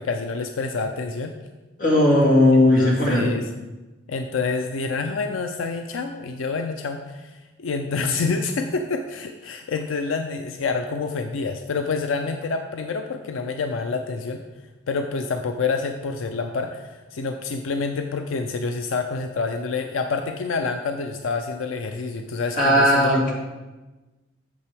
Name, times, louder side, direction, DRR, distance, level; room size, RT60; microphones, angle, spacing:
voice 1, 0.0-1.3 2.8-3.5 4.1-14.4 14.9-23.2, left 4 dB, 90° left, 6 dB, 0.5 m, -27 dB
voice 2, 1.8-3.3 22.6-23.3, left 1 dB, 45° left, -3 dB, 1.9 m, -17 dB
8.4 x 6.7 x 3.5 m, 1.2 s
head